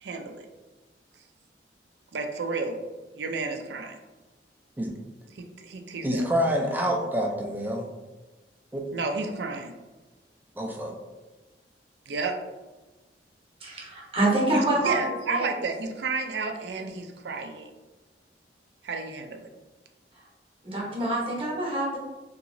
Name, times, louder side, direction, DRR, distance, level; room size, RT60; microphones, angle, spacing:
voice 1, 0.0-0.5 2.1-2.8 3.1-4.0 5.3-6.3 8.9-9.7 12.1-12.4 14.8-17.7 18.8-19.5, right 4 dB, 70° right, 5 dB, 0.4 m, -31 dB
voice 2, 6.0-7.9 8.7-8.8 10.6-11.0, equal, 10° right, 0 dB, 0.4 m, -27 dB
voice 3, 13.6-15.5 20.6-22.0, right 2 dB, 30° right, -4 dB, 0.9 m, -26 dB
2.9 x 2.9 x 2.6 m, 1.2 s
head